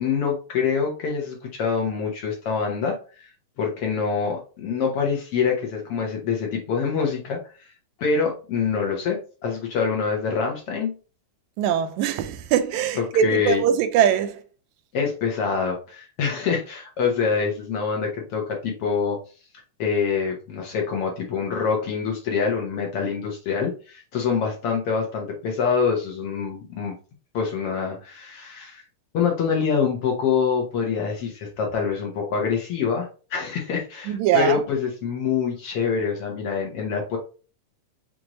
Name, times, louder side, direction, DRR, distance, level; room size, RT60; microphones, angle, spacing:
voice 1, 0.0-3.3 3.6-7.7 8.0-11.0 13.0-13.6 14.9-19.2 19.8-26.9 27.3-28.8 29.1-37.2, left 6 dB, 65° left, 1.6 m, -25 dB
voice 2, 11.6-14.4 34.1-34.6, right 9 dB, 85° right, 1.9 m, -22 dB
6.0 x 2.6 x 2.9 m
omnidirectional pair, 3.3 m